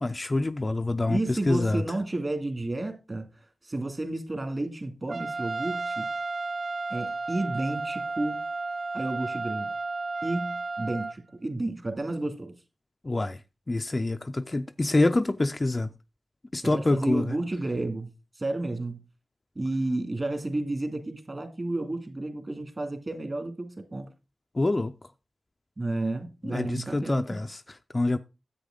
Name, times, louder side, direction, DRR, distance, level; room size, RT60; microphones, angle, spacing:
voice 1, 0.0-1.8 13.0-13.4 13.7-15.9 16.5-17.3 24.6-24.9 26.4-28.2, left 2 dB, 30° left, 0.4 m, -26 dB
voice 2, 1.1-3.3 3.6-6.1 6.9-8.4 8.9-9.7 10.2-12.6 16.6-18.1 18.4-19.0 19.6-24.1 25.8-27.4, right 2 dB, 35° right, 2.1 m, -31 dB
Trumpet, 5.1-11.2, right 3 dB, 55° right, 0.5 m, -33 dB
10.0 x 8.1 x 3.8 m
wide cardioid pair, 85°, 0 cm